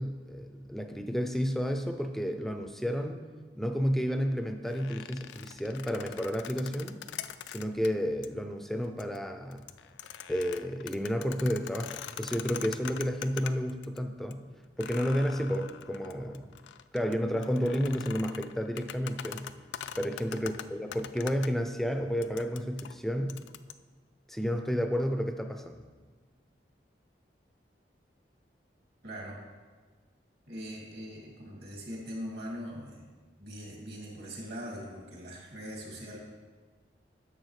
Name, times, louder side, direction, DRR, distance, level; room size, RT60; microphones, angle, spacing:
voice 1, 0.0-3.2 3.5-7.0 7.5-9.7 10.3-14.4 14.8-16.5 16.9-19.5 20.0-23.4 24.3-25.8, equal, ahead, 6 dB, 0.4 m, -31 dB
sound 1, 4.7-7.9 8.2-8.3 8.8-9.2 9.5-14.0 14.3-14.4 14.8-21.5 22.2-23.7, left 10 dB, 85° left, 0.3 m, -43 dB
voice 2, 29.0-29.4 30.5-33.1 33.4-36.2, equal, 65° right, -2 dB, 2.2 m, -41 dB
10.5 x 7.1 x 3.2 m, 1.4 s
head